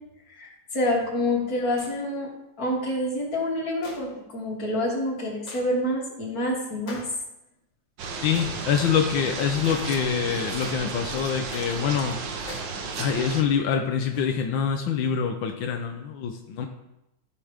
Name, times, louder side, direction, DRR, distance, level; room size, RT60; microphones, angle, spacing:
voice 1, 0.3-2.3 2.6-7.0, left 1 dB, 50° left, -4 dB, 3.1 m, -27 dB
sound 1, 1.7-2.0 3.8-4.1 5.5-5.7 6.9-7.2 8.3-8.6 9.6-10.0 10.6-10.9 11.5-11.8 12.4-12.8 14.1-14.4, left 2 dB, 70° left, 2.7 m, -42 dB
sound 2, 8.0-13.4, right 4 dB, 75° right, 1.8 m, -33 dB
voice 2, 8.2-12.2 13.0-16.7, left 7 dB, 90° left, 4 dB, 1.6 m, -25 dB
13.5 x 6.0 x 5.0 m, 0.89 s
omnidirectional pair, 2.0 m